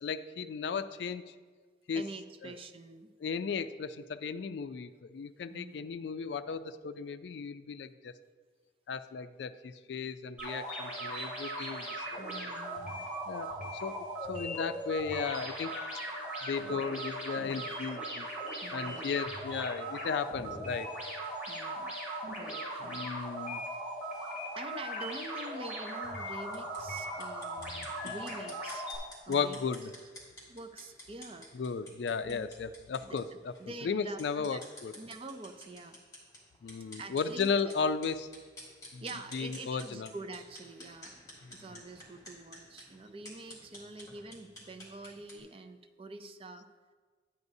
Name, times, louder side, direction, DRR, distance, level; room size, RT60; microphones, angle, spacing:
voice 1, 0.0-1.3 1.9-2.0 2.4-2.6 3.2-8.1 8.9-12.2 13.3-15.7 16.4-18.3 18.7-20.9 22.8-23.6 28.0-28.2 29.3-29.9 31.5-33.5 33.8-34.9 36.6-38.3 38.9-39.0 39.3-40.1 41.4-41.5, left 5 dB, 70° left, 12 dB, 0.3 m, -35 dB
voice 2, 1.9-3.1 5.5-5.8 12.2-13.0 18.6-19.1 21.5-22.0 22.3-23.1 24.5-28.9 29.3-29.6 30.5-31.5 32.2-32.5 33.0-34.6 35.0-36.0 37.0-37.7 39.0-41.2 41.5-46.7, right 2 dB, 30° right, 7 dB, 0.4 m, -46 dB
sound 1, 10.4-29.0, right 1 dB, 10° right, 2.5 m, -39 dB
sound 2, 26.5-45.4, left 1 dB, 20° left, 2.4 m, -52 dB
10.5 x 9.4 x 2.7 m, 1.5 s
head